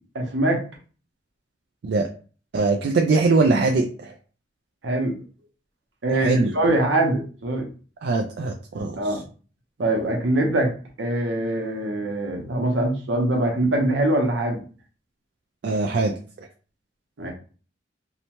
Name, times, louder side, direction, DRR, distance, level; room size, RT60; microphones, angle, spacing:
voice 1, 0.1-0.6 4.8-5.2 6.0-7.7 9.0-9.2 9.8-10.7 11.0-14.6 17.2-17.3, right 1 dB, 80° right, 1 dB, 0.8 m, -23 dB
voice 2, 2.5-4.1 6.1-6.5 8.0-9.2 15.6-16.1, right 3 dB, 60° right, 1 dB, 0.3 m, -22 dB
2.8 x 2.1 x 2.9 m, 0.39 s
head